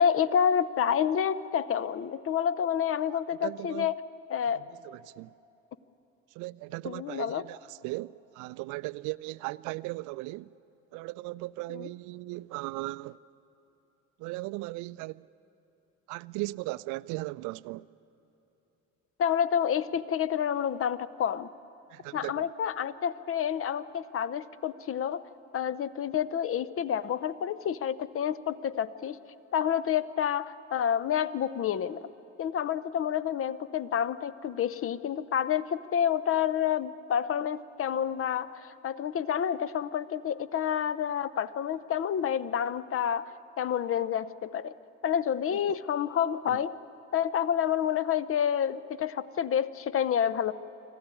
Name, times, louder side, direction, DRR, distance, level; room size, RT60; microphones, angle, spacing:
voice 1, 0.0-4.0 4.3-4.6 6.8-7.4 11.7-11.9 19.2-21.5 22.1-25.2 25.5-29.2 29.5-32.1 32.4-43.3 43.6-44.7 45.0-46.7 47.1-50.5, left 8 dB, 40° left, 0.8 m, -29 dB
voice 2, 3.1-3.9 4.8-5.3 6.3-10.5 10.9-13.2 14.2-15.3 16.1-17.9 21.9-22.5 45.5-45.6 46.5-46.6, right 21 dB, 55° right, 0.5 m, -37 dB
25.0 x 14.0 x 9.8 m
figure-of-eight pair, 50°, 36 cm